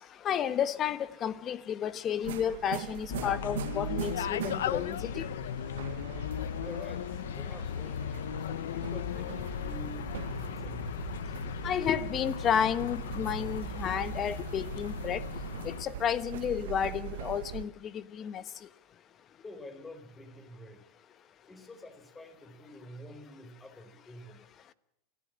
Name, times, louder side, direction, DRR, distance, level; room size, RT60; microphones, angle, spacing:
voice 1, 0.2-5.3 11.6-15.2 15.6-18.4, left 9 dB, 35° left, 1.2 m, -31 dB
sound 1, 2.2-17.7, right 13 dB, 80° right, 1.1 m, -41 dB
sound 2, 3.1-15.8, left 10 dB, 85° left, 0.9 m, -37 dB
voice 2, 6.6-11.1 19.4-20.9 21.5-24.4, left 1 dB, 15° left, 4.6 m, -48 dB
28.0 x 14.5 x 8.8 m
supercardioid pair, 115°, 0 cm